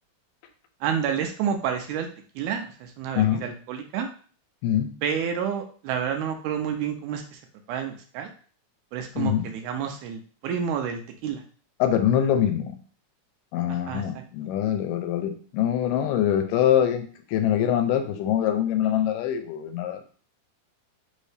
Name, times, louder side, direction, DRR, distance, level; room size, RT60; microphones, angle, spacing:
voice 1, 0.8-2.1 2.4-4.1 5.0-7.2 7.7-8.3 8.9-11.4 13.9-14.0, right 8 dB, 80° right, 5 dB, 1.9 m, -29 dB
voice 2, 9.2-9.5 11.8-12.8 13.5-20.0, left 10 dB, 90° left, 7 dB, 2.2 m, -24 dB
5.2 x 2.7 x 3.3 m, 0.42 s
omnidirectional pair, 3.7 m